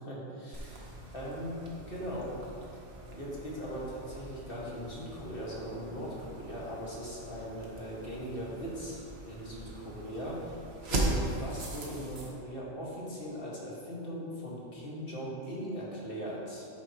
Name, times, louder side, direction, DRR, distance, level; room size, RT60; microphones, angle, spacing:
voice 1, 0.0-0.8 1.1-2.4 3.1-10.6 10.9-16.7, equal, 50° left, -5 dB, 2.1 m, -39 dB
sound 1, 0.5-12.3, right 2 dB, 55° right, 1.5 m, -39 dB
9.7 x 9.1 x 3.0 m, 2.6 s
omnidirectional pair, 1.3 m